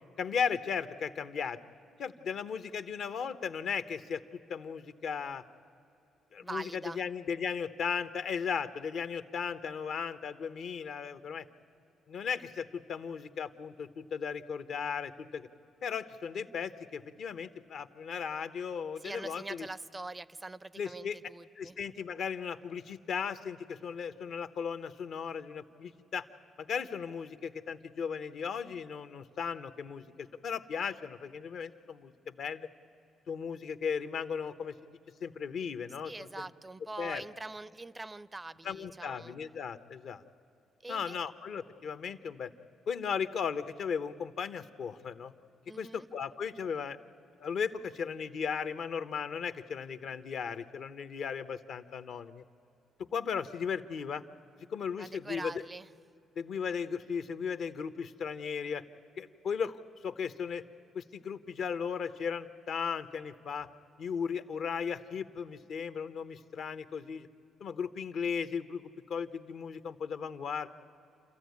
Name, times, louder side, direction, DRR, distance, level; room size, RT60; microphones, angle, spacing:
voice 1, 0.2-1.6 2.0-4.2 4.5-5.4 6.3-11.5 12.1-15.5 15.8-19.7 20.8-21.2 21.6-26.3 26.6-32.7 33.3-34.7 35.2-36.5 37.0-37.2 38.6-40.2 40.9-42.5 42.9-45.3 45.8-47.0 47.4-52.4 53.1-54.2 54.7-55.6 56.4-58.8 59.2-60.6 60.9-63.7 64.0-67.3 67.6-70.7, left 6 dB, 65° left, 11 dB, 0.9 m, -36 dB
voice 2, 6.4-7.0 19.0-21.8 36.0-39.3 40.8-41.2 45.7-46.1 55.0-55.9, right 2 dB, 20° right, 18 dB, 0.4 m, -43 dB
28.5 x 14.0 x 9.5 m, 2.7 s
cardioid pair, 90°, 0 cm